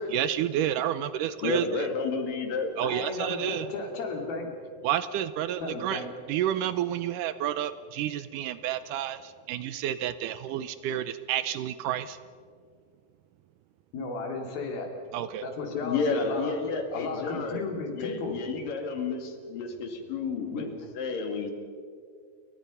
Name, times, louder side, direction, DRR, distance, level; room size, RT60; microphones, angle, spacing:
voice 1, 0.1-1.9 2.8-3.7 4.8-6.0 6.3-12.2 15.1-15.4, right 11 dB, 75° right, 13 dB, 2.0 m, -30 dB
voice 2, 1.4-2.7 15.8-20.7 21.0-21.5, left 4 dB, 70° left, 5 dB, 3.9 m, -31 dB
voice 3, 2.8-4.5 5.6-6.1 13.9-14.9 15.4-16.6 16.9-18.4 20.5-20.7, left 3 dB, 85° left, 3 dB, 4.9 m, -34 dB
28.5 x 24.0 x 5.6 m, 2.1 s
omnidirectional pair, 4.1 m